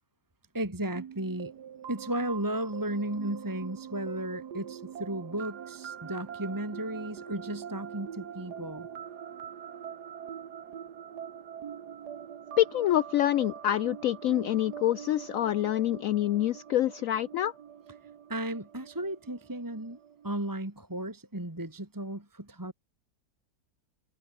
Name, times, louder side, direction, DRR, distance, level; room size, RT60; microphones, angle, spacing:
voice 1, 0.5-1.5 1.9-8.9 18.3-20.0 20.2-22.7, right 1 dB, 10° right, 2.1 m, -34 dB
sound 1, 1.0-20.5, right 8 dB, 80° right, 1.9 m, -44 dB
voice 2, 12.6-17.5, left 13 dB, 70° left, 0.9 m, -26 dB
omnidirectional pair, 1.7 m